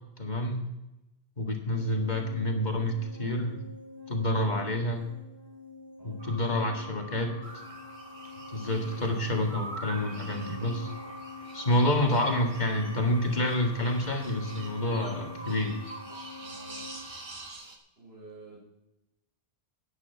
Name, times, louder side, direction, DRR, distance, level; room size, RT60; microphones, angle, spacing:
voice 1, 0.2-0.6 1.4-2.9 3.2-3.6 4.1-5.1 6.0-7.4 8.5-10.9 11.5-15.8, left 1 dB, 40° left, 2 dB, 2.0 m, -28 dB
sound 1, 1.8-16.9, left 3 dB, 65° left, 2.8 m, -46 dB
sound 2, 6.2-17.5, equal, 20° right, 3.0 m, -47 dB
sound 3, 7.4-17.8, right 3 dB, 45° right, 1.6 m, -46 dB
voice 2, 16.4-16.9 18.0-18.6, right 2 dB, 65° right, -4 dB, 6.0 m, -50 dB
10.5 x 9.8 x 5.7 m, 0.95 s
omnidirectional pair, 1.1 m